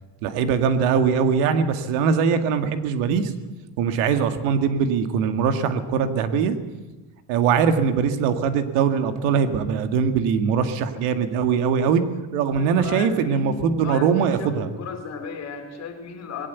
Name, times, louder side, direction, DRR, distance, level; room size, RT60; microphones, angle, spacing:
voice 1, 0.2-3.3 3.8-6.6 7.3-12.0 12.3-14.7, right 6 dB, 90° right, 8 dB, 2.0 m, -21 dB
voice 2, 12.5-16.5, left 5 dB, 30° left, 4 dB, 3.3 m, -35 dB
20.0 x 17.5 x 8.2 m, 1.2 s
cardioid pair, 165°, 49 cm